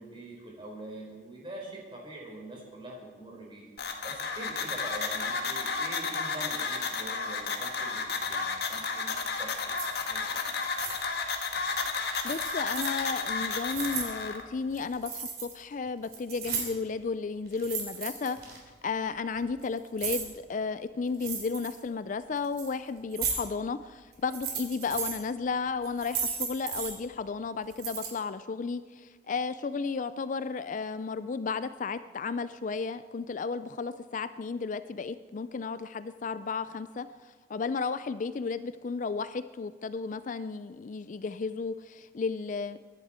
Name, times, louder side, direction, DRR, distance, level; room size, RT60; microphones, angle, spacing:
voice 1, 0.0-10.6, right 1 dB, 30° right, -2 dB, 4.3 m, -44 dB
sound 1, 3.8-14.4, left 4 dB, 60° left, 1.6 m, -32 dB
sound 2, 9.7-9.9 10.5-10.9 12.2-13.0 13.5-14.1 14.7-15.5 15.9-16.9 17.5-18.6 19.4-20.2 21.1-21.8 22.4-22.7 23.1-23.3 24.1-25.2 25.8-26.9 27.7-28.1, right 6 dB, 60° right, 3.3 m, -35 dB
voice 2, 12.2-18.6 18.8-42.8, left 4 dB, 45° left, 13 dB, 0.4 m, -33 dB
22.5 x 11.0 x 4.4 m, 1.4 s
head